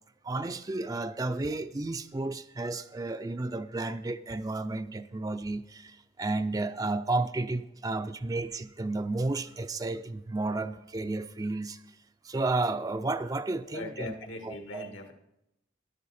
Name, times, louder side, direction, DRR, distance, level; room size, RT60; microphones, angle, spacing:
voice 1, 0.2-12.0 12.2-14.1 14.4-14.9, right 2 dB, 20° right, 0.4 m, -32 dB
voice 2, 13.7-15.1, left 2 dB, 80° left, 1.7 m, -40 dB
12.0 x 11.5 x 4.2 m
head